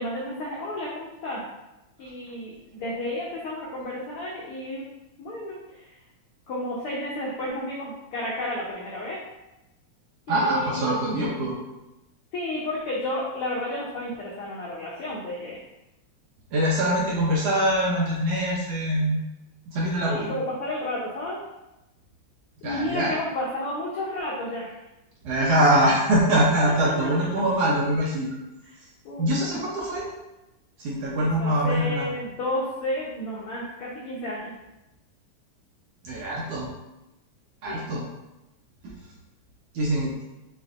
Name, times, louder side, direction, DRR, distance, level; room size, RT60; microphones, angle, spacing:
voice 1, 0.0-1.5 2.0-4.9 5.2-5.9 6.5-9.3 10.3-10.8 12.3-15.6 20.0-21.4 22.6-24.8 26.8-27.1 28.7-28.8 29.0-29.3 31.2-34.5 37.6-37.8, left 1 dB, 85° left, -5 dB, 1.2 m, -32 dB
voice 2, 10.3-11.5 16.5-19.2 19.7-20.3 22.6-23.1 25.2-28.4 29.2-30.1 30.8-32.1 36.0-36.7 37.6-38.0 38.8-38.9 39.7-40.1, right 1 dB, 75° right, -4 dB, 1.5 m, -23 dB
6.6 x 2.6 x 2.4 m, 0.94 s
omnidirectional pair, 3.4 m